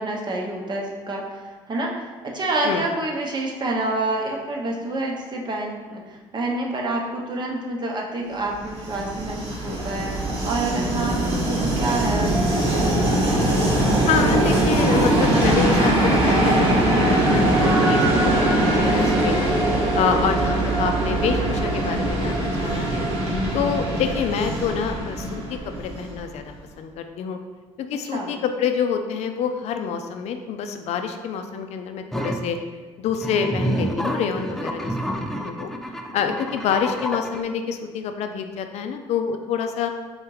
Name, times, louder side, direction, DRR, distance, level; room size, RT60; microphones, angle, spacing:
voice 1, 0.0-1.9 2.2-12.9 28.0-28.3, right 2 dB, 40° right, 0 dB, 0.8 m, -28 dB
Train, 8.6-26.3, right 1 dB, 60° right, 1.2 m, -21 dB
voice 2, 14.0-19.5 19.9-23.1 23.5-27.4 27.8-32.6 33.0-35.7 36.1-39.9, left 7 dB, 65° left, 7 dB, 0.4 m, -27 dB
sound 1, 32.1-32.5 33.1-37.4, right 1 dB, 5° left, 0.4 m, -29 dB
3.9 x 3.4 x 3.1 m, 1.4 s
supercardioid pair, 80°, 12 cm